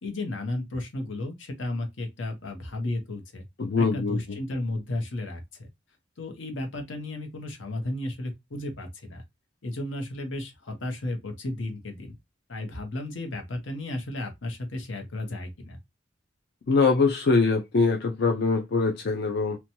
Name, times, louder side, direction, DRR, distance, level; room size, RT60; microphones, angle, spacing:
voice 1, 0.0-3.4 3.8-5.7 6.2-9.2 9.6-12.1 12.5-15.8, left 1 dB, 85° left, 0.8 m, -33 dB
voice 2, 3.6-4.2 16.7-19.6, left 4 dB, 55° left, 0.4 m, -23 dB
2.9 x 2.2 x 2.6 m
head